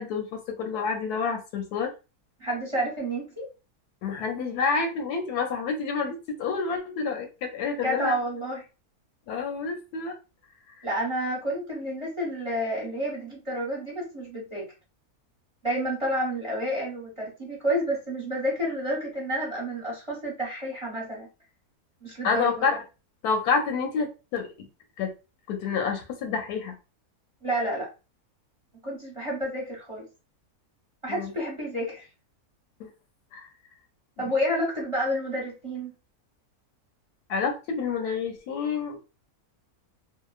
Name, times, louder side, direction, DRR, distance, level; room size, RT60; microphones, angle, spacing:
voice 1, 0.0-1.9 4.0-8.2 9.3-10.1 22.2-22.8 23.2-24.7 25.0-25.1 25.5-26.7 31.1-31.3 32.8-32.9 33.3-33.5 37.3-39.0, left 5 dB, 85° left, 4 dB, 1.2 m, -28 dB
voice 2, 2.4-3.5 7.8-8.6 10.8-14.7 15.6-21.3 22.0-22.7 27.4-27.9 28.8-30.0 31.0-32.1 34.2-35.9, equal, 25° right, -4 dB, 0.9 m, -30 dB
2.8 x 2.1 x 2.3 m, 0.30 s
omnidirectional pair, 1.6 m